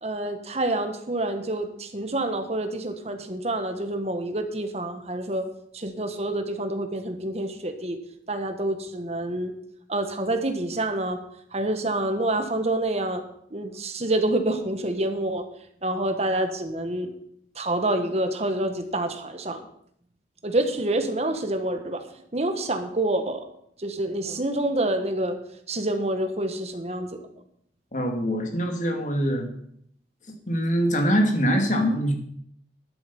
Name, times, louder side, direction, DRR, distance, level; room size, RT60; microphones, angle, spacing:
voice 1, 0.0-5.4 5.7-8.0 8.3-9.5 9.9-11.2 11.5-13.2 13.5-15.4 15.8-17.1 17.5-19.7 20.4-22.0 22.3-23.4 23.8-25.4 25.7-27.1, right 1 dB, 35° right, 7 dB, 1.4 m, -27 dB
voice 2, 27.9-29.5 30.5-32.1, equal, 45° left, 3 dB, 2.2 m, -23 dB
11.5 x 8.2 x 7.0 m, 0.69 s
head